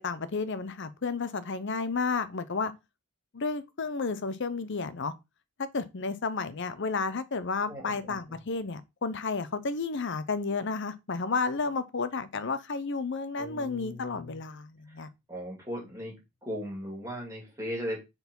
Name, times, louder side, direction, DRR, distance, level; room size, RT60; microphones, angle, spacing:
voice 1, 0.0-2.7 3.3-5.1 5.6-15.1, left 4 dB, 55° left, 0.7 m, -32 dB
voice 2, 7.7-8.4 13.4-14.4 14.9-15.0 15.3-16.1 16.4-18.0, equal, 15° right, 2.6 m, -38 dB
4.7 x 4.0 x 5.2 m
head